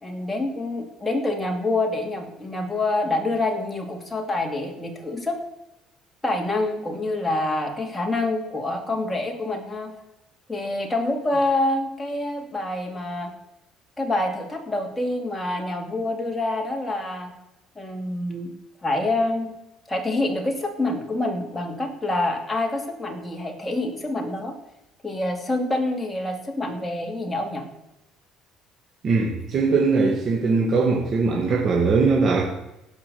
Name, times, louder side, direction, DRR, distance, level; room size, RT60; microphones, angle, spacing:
voice 1, 0.0-5.4 6.2-9.9 10.5-13.3 14.0-17.3 17.8-18.5 18.8-19.5 19.9-24.6 25.0-27.7, left 2 dB, 10° left, 2 dB, 2.6 m, -26 dB
voice 2, 29.0-32.4, right 4 dB, 40° right, -1 dB, 2.1 m, -20 dB
17.5 x 5.9 x 7.0 m, 0.92 s
cardioid pair, 115°, 0 cm